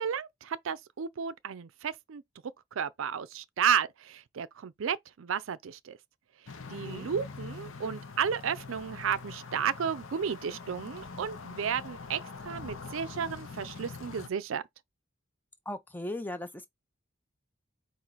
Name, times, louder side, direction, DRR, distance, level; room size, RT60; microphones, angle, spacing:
voice 1, 0.0-2.2 2.7-6.0 6.7-14.6, right 7 dB, 70° right, 0.4 m, -33 dB
sound 1, 6.5-14.3, left 4 dB, 70° left, 0.7 m, -44 dB
voice 2, 6.7-7.1 15.7-16.7, left 1 dB, 10° left, 0.5 m, -38 dB
4.4 x 2.6 x 4.0 m
head